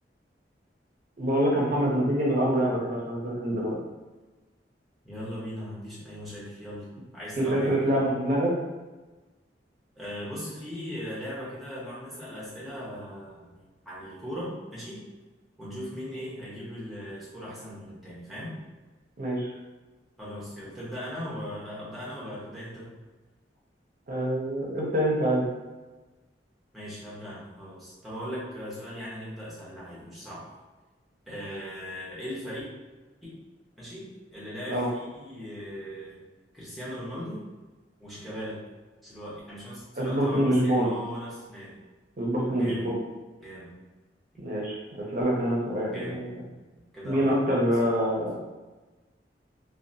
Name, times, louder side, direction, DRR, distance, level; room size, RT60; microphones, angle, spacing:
voice 1, 1.2-3.8 7.4-8.5 19.2-19.5 24.1-25.4 34.7-34.9 40.0-40.9 42.2-43.0 44.4-46.3 47.0-48.4, right 1 dB, 50° right, -3 dB, 0.5 m, -25 dB
voice 2, 5.0-6.9 7.1-7.9 9.9-13.5 13.9-15.0 15.6-18.5 20.2-22.9 26.7-30.5 31.3-32.7 33.2-33.3 33.8-36.2 36.5-37.4 38.0-38.6 39.0-41.8 42.5-42.9 43.4-43.7 45.9-46.2 46.7-47.3 47.8-47.9, equal, ahead, -8 dB, 0.8 m, -38 dB
2.8 x 2.1 x 2.6 m, 1.2 s
head